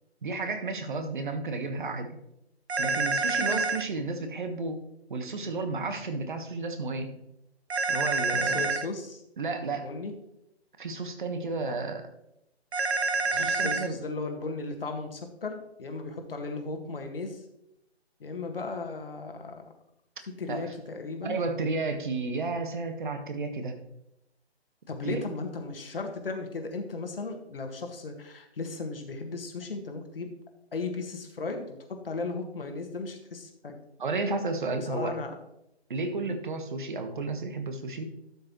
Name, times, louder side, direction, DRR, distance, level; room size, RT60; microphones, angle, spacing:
voice 1, 0.2-2.2 2.8-4.8 5.1-7.1 7.9-8.7 9.4-9.9 10.8-12.0 13.3-14.0 20.5-20.7 21.2-23.7 25.0-25.2 34.0-35.2 35.9-38.1, right 3 dB, 50° right, 7 dB, 1.4 m, -32 dB
sound 1, 2.7-3.8 7.7-8.9 12.7-13.9, right 3 dB, 75° right, 0.8 m, -27 dB
voice 2, 8.2-9.2 9.8-10.1 11.7-11.8 13.3-17.4 18.2-19.7 20.4-21.4 24.9-30.3 30.7-33.7 34.9-35.3 36.1-36.3, left 3 dB, 60° left, 4 dB, 1.7 m, -36 dB
12.0 x 6.6 x 3.0 m, 0.81 s
figure-of-eight pair, 145°, 33 cm